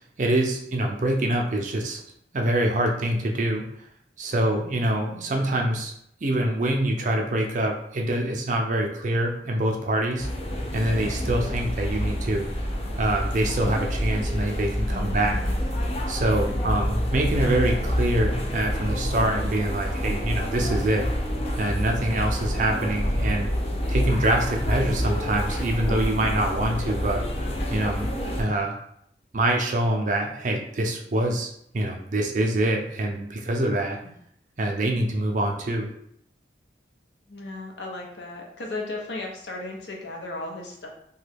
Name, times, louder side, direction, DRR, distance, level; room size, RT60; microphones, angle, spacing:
voice 1, 0.2-2.0 2.3-3.7 4.2-5.9 6.2-10.3 10.7-12.5 13.0-15.4 16.1-21.1 21.6-23.5 23.9-27.2 27.7-28.1 28.4-28.8 29.3-34.0 34.6-35.9, right 1 dB, 45° right, 2 dB, 0.5 m, -25 dB
sound 1, 10.2-28.4, equal, 35° left, 0.4 m, -27 dB
voice 2, 14.9-15.6 16.3-16.7 34.0-34.1 37.3-40.9, left 2 dB, 80° left, 0 dB, 0.7 m, -36 dB
2.9 x 2.2 x 3.3 m, 0.71 s
head